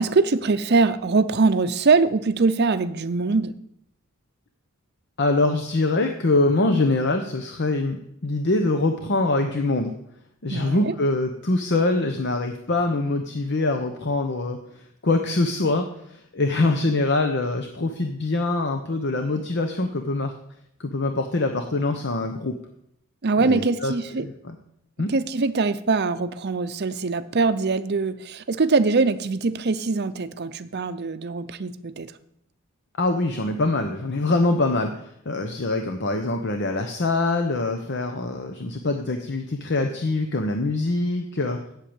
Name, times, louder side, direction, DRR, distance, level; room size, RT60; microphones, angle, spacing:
voice 1, 0.0-3.5 10.5-10.9 23.2-24.3 25.1-32.1, right 4 dB, 50° right, 12 dB, 0.6 m, -22 dB
voice 2, 5.2-9.9 10.4-14.6 15.0-20.3 20.8-22.5 23.4-24.6 25.0-25.1 33.0-41.6, left 2 dB, 55° left, 5 dB, 0.9 m, -24 dB
8.2 x 7.6 x 8.7 m, 0.76 s
head